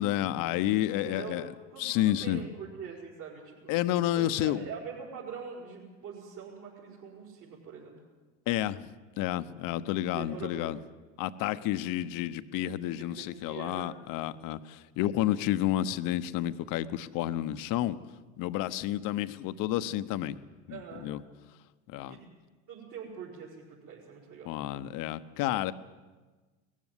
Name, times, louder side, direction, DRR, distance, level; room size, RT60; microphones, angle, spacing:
voice 1, 0.0-1.5 1.8-2.4 3.7-4.6 8.5-8.8 9.2-10.8 11.2-18.0 18.4-20.4 20.7-21.2 21.9-22.2 24.5-25.7, left 13 dB, 55° left, 13 dB, 1.0 m, -30 dB
voice 2, 1.0-3.7 4.0-8.0 10.2-10.8 13.0-13.9 20.7-21.2 22.1-22.2 22.7-24.6, right 6 dB, 50° right, -5 dB, 5.7 m, -44 dB
19.5 x 15.0 x 9.8 m, 1.3 s
hypercardioid pair, 95°, 38 cm